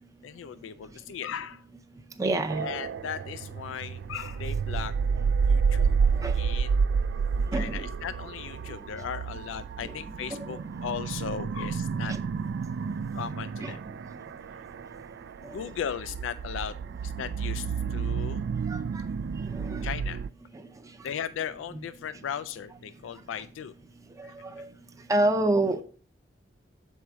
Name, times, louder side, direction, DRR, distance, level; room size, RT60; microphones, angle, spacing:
voice 1, 0.2-1.6 2.6-4.9 5.5-6.0 6.3-6.7 7.5-12.1 13.1-13.8 15.4-18.4 19.8-20.2 21.0-23.7 24.2-24.3, left 8 dB, 85° left, 0.3 m, -37 dB
voice 2, 2.2-2.7 6.2-6.3 7.5-7.8 9.8-9.9 10.3-10.4 12.1-12.2 13.6-13.8 15.4-15.6 18.7-18.8 19.6-19.9 24.2-24.3 24.6-24.7 25.1-25.8, right 2 dB, 20° right, 0.6 m, -27 dB
sound 1, 2.5-20.3, right 5 dB, 65° right, 0.3 m, -30 dB
7.0 x 4.7 x 3.6 m
head